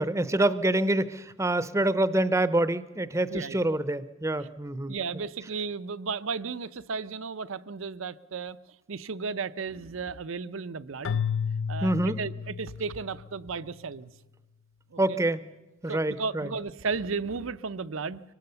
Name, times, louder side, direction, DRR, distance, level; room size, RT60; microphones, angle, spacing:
voice 1, 0.0-4.9 11.8-12.2 15.0-15.4 15.8-16.5, right 1 dB, 15° right, 15 dB, 0.6 m, -26 dB
voice 2, 3.3-3.6 4.9-8.6 8.9-11.2 11.7-14.1 14.9-15.2 15.9-18.2, right 4 dB, 75° right, 14 dB, 0.6 m, -34 dB
Keyboard (musical), 11.0-13.3, left 7 dB, 65° left, 0.6 m, -31 dB
24.0 x 18.5 x 6.9 m, 1.1 s
head